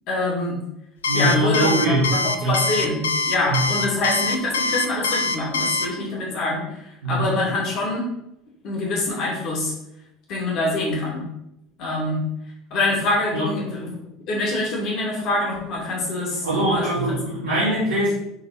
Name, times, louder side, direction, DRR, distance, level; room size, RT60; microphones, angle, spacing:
voice 1, 0.1-0.6 1.1-8.1 8.6-9.7 10.3-11.3 11.8-12.3 12.7-14.0 14.3-16.9 17.5-17.7, left 2 dB, 50° left, -3 dB, 2.8 m, -25 dB
Alarm, 1.0-5.9, left 3 dB, 70° left, 0.6 m, -23 dB
voice 2, 1.1-2.6 3.5-3.6 7.0-7.3 13.3-13.5 16.4-18.1, right 1 dB, 70° right, -12 dB, 2.8 m, -22 dB
7.8 x 4.1 x 4.3 m, 0.82 s
figure-of-eight pair, 70°, 0 cm